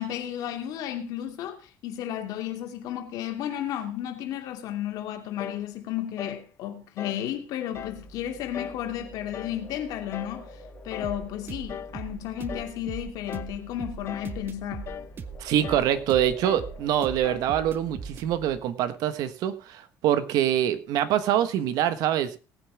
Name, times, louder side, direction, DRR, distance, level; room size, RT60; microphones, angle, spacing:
voice 1, 0.0-14.9, left 11 dB, 70° left, 2.6 m, -33 dB
sound 1, 5.4-5.7 6.2-6.5 7.0-7.3 7.7-8.0 8.5-8.9 9.3-9.6 10.1-10.4 10.9-11.2 11.7-12.0 12.5-12.8 13.3-13.6 14.1-14.4 14.9-15.1 15.6-15.9 16.4-16.7 17.2-17.5, left 9 dB, 40° left, 0.6 m, -39 dB
sound 2, 7.7-18.6, equal, 20° left, 2.5 m, -47 dB
sound 3, 11.0-18.3, right 6 dB, 30° right, 0.9 m, -40 dB
voice 2, 15.4-22.4, right 11 dB, 70° right, 1.3 m, -25 dB
18.0 x 9.5 x 3.4 m
cardioid pair, 155°, 7 cm